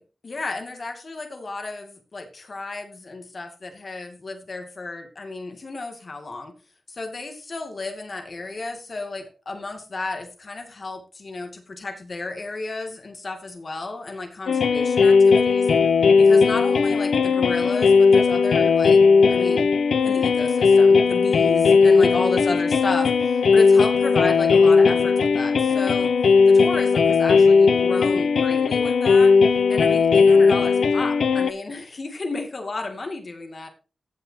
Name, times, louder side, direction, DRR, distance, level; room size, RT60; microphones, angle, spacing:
voice 1, 0.0-6.5 6.9-15.7 16.2-19.0 19.3-19.7 20.0-26.1 26.5-29.3 29.7-33.7, left 3 dB, 40° left, 4 dB, 2.3 m, -33 dB
sound 1, 14.5-31.5, left 5 dB, 85° left, 0.9 m, -17 dB
15.5 x 7.8 x 2.8 m, 0.34 s
wide cardioid pair, 170°, 0 cm